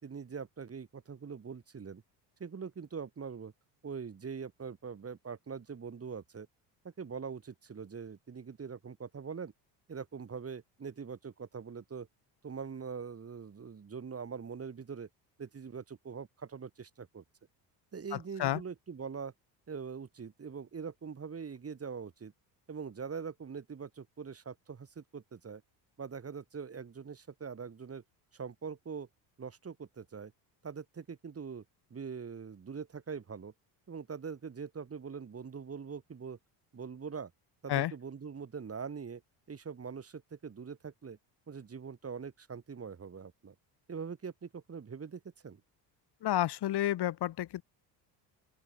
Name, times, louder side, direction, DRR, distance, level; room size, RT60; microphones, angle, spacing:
voice 1, 0.0-2.0 2.4-3.5 3.8-6.5 7.0-9.5 9.9-12.1 12.4-15.1 15.4-17.2 17.9-19.3 19.7-22.3 22.7-25.6 26.0-28.0 28.3-29.1 29.4-30.3 30.6-31.6 31.9-33.5 33.9-36.4 36.7-37.3 37.6-39.2 39.5-41.2 41.5-43.5 43.9-45.6, right 6 dB, 30° right, 2.7 m, -43 dB
voice 2, 46.2-47.6, left 13 dB, 55° left, 1.8 m, -30 dB
open air
supercardioid pair, 85°, 47 cm